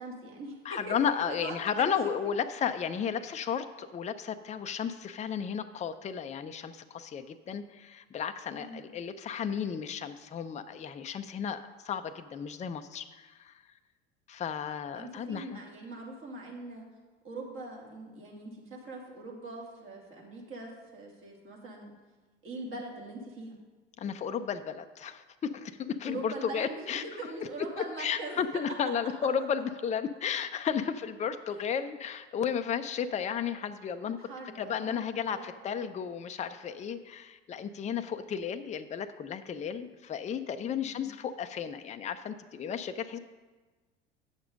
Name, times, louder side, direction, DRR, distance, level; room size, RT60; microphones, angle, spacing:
voice 1, 0.0-2.1 8.6-8.8 14.9-16.8 17.2-21.9 22.4-23.6 26.0-26.9 27.2-28.4 34.2-35.5 40.8-41.1, right 2 dB, 40° right, -1 dB, 2.6 m, -42 dB
voice 2, 0.6-13.5 14.3-15.6 24.0-27.5 27.8-34.3 34.6-43.2, left 7 dB, 20° left, 9 dB, 0.5 m, -33 dB
8.8 x 6.7 x 5.2 m, 1.3 s
hypercardioid pair, 70°, 31 cm